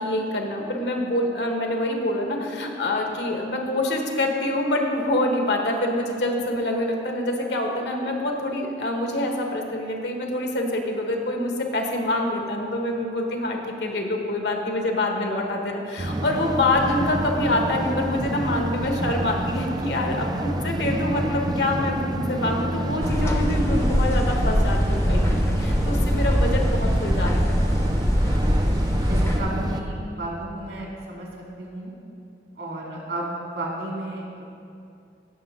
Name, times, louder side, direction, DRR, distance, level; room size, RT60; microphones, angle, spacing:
voice 1, 0.0-27.6, left 1 dB, 70° left, 2 dB, 1.2 m, -26 dB
sound 1, 16.0-29.8, right 1 dB, 20° right, 0.3 m, -28 dB
sound 2, 23.0-29.4, equal, 15° left, 0.6 m, -22 dB
voice 2, 29.1-31.3 31.6-31.9 32.6-34.4, right 1 dB, 70° right, -2 dB, 2.3 m, -33 dB
16.0 x 6.5 x 3.6 m, 2.5 s
head